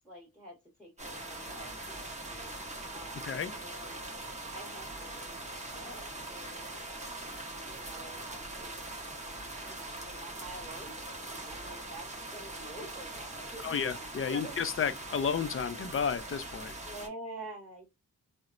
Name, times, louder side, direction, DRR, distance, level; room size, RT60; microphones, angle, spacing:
voice 1, 0.0-4.0 4.5-8.7 9.6-14.6 16.8-17.9, right 1 dB, ahead, 1.0 m, -48 dB
sound 1, 1.0-17.1, right 2 dB, 20° right, 0.8 m, -42 dB
voice 2, 13.6-16.7, left 6 dB, 35° left, 0.4 m, -32 dB
2.9 x 2.0 x 2.4 m
wide cardioid pair, 80°, 38 cm